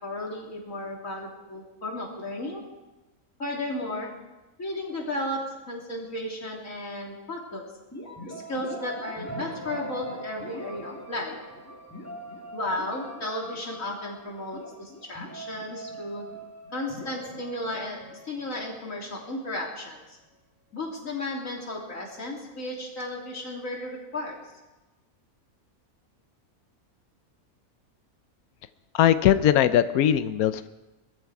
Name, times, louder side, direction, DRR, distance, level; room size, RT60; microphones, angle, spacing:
voice 1, 0.0-2.6 3.4-4.1 4.6-7.7 8.3-11.4 12.5-16.3 16.7-18.0 18.2-20.2 20.7-24.4, left 1 dB, 60° left, -2 dB, 3.7 m, -34 dB
sound 1, 7.9-19.6, right 1 dB, 10° left, 2.9 m, -41 dB
voice 2, 28.9-30.7, left 11 dB, 75° left, 12 dB, 1.2 m, -20 dB
20.5 x 14.0 x 4.9 m, 1.1 s
omnidirectional pair, 1.6 m